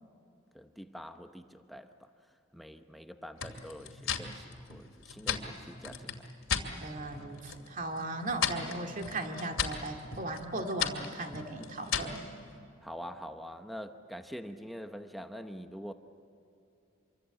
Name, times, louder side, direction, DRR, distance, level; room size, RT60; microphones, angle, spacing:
voice 1, 0.5-2.1 2.5-6.3 12.8-15.9, equal, ahead, 6 dB, 0.8 m, -45 dB
sound 1, 3.4-6.7 7.1-7.7 8.0-12.2, left 7 dB, 85° left, 2.5 m, -36 dB
voice 2, 6.8-12.2, right 2 dB, 40° right, 3 dB, 2.3 m, -37 dB
26.5 x 24.0 x 8.3 m, 2.7 s
head